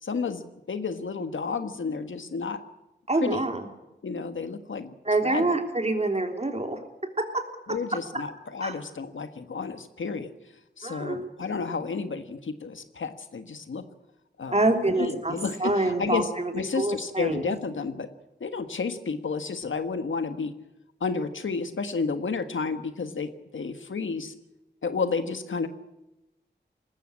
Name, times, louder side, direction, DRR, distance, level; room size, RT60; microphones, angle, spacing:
voice 1, 0.0-2.6 3.2-3.4 4.0-4.9 5.2-5.6 7.7-10.3 10.8-13.9 14.4-18.1 18.4-20.5 21.0-24.3 24.8-25.7, left 4 dB, 90° left, 9 dB, 1.5 m, -31 dB
voice 2, 3.1-3.7 5.1-6.8 8.6-8.7 10.8-11.3 14.5-17.5, right 2 dB, 35° right, 4 dB, 3.5 m, -26 dB
19.5 x 15.0 x 9.9 m, 0.98 s
wide cardioid pair, 65°, 20 cm